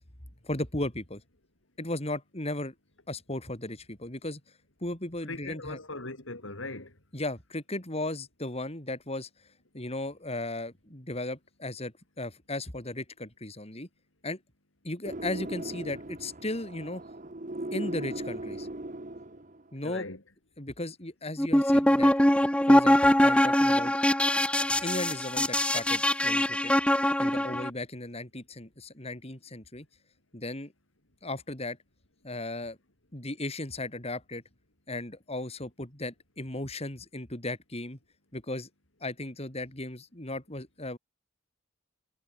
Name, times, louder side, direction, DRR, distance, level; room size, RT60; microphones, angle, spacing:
voice 1, 0.4-1.2 1.8-2.7 3.1-4.4 4.8-5.8 7.1-9.3 9.7-13.9 14.2-14.4 14.8-17.0 17.7-18.7 19.7-20.1 20.6-22.1 22.7-23.9 24.8-26.7 27.2-29.9 30.3-30.7 31.2-31.8 32.2-32.8 33.1-34.4 34.9-38.0 38.3-38.7 39.0-41.0, left 2 dB, 30° left, 4.3 m, -36 dB
voice 2, 5.3-7.0 19.8-20.2 27.4-27.6, left 2 dB, 85° left, 6.4 m, -39 dB
sound 1, 15.0-19.7, right 1 dB, 40° right, 1.6 m, -38 dB
sound 2, 21.4-27.7, left 1 dB, 5° left, 1.3 m, -23 dB
head